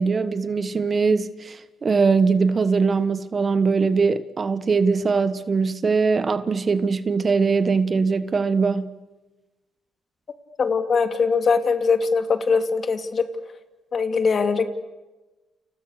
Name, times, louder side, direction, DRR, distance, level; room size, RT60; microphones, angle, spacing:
voice 1, 0.0-8.9, right 4 dB, 35° right, 1.4 m, -21 dB
voice 2, 10.6-13.3 13.9-14.7, left 5 dB, 45° left, 2.8 m, -21 dB
30.0 x 29.0 x 6.7 m
cardioid pair, 90°, 0 cm